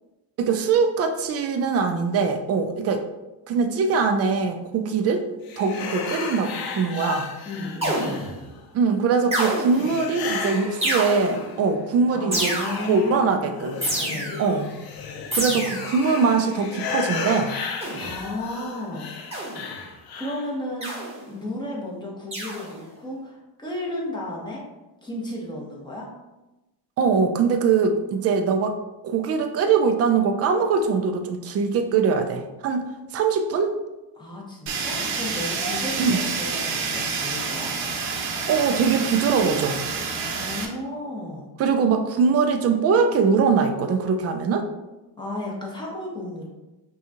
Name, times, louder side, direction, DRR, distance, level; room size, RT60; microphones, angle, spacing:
voice 1, 0.4-3.0 3.5-5.2 5.6-7.3 8.7-12.6 12.9-13.8 14.4-14.7 15.3-17.5 27.0-28.8 29.0-33.8 36.0-36.2 38.5-39.8 41.6-44.7, right 5 dB, 35° right, 7 dB, 0.4 m, -22 dB
sound 1, 5.5-8.6 9.7-11.7 12.1-20.5, left 5 dB, 50° left, 0.6 m, -34 dB
voice 2, 7.5-8.5 12.1-13.7 14.0-14.4 15.5-15.7 18.0-19.1 20.1-24.6 25.0-26.1 34.2-37.7 40.3-41.5 45.2-46.5, left 1 dB, 10° left, -3 dB, 0.9 m, -33 dB
sound 2, 7.8-8.4 9.3-10.0 10.8-11.5 12.3-13.0 13.8-14.6 15.3-16.1 17.8-18.2 19.3-19.8 20.8-21.3 22.3-22.8, right 1 dB, 15° right, 1.1 m, -28 dB
Fire, 34.7-40.7, right 5 dB, 80° right, 0.9 m, -28 dB
5.5 x 2.4 x 2.8 m, 1.0 s
cardioid pair, 125°, 47 cm